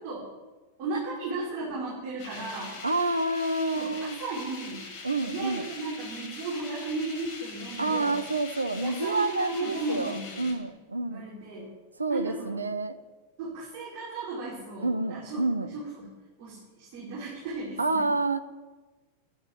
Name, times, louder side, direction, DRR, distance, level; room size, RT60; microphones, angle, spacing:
voice 1, 0.8-2.8 3.8-3.9 4.2-4.8 5.2-8.2 8.8-10.5 11.1-11.7 12.1-12.7 13.4-15.4 15.7-16.1 16.4-18.1, right 3 dB, 45° right, -6 dB, 5.2 m, -35 dB
sound 1, 2.2-10.5, left 4 dB, 40° left, 6.1 m, -43 dB
voice 2, 2.8-4.2 5.0-5.6 7.8-11.2 12.0-13.0 14.8-15.7 17.8-18.4, right 2 dB, 80° right, 10 dB, 0.9 m, -28 dB
11.0 x 10.5 x 9.3 m, 1.2 s
figure-of-eight pair, 90°, 0 cm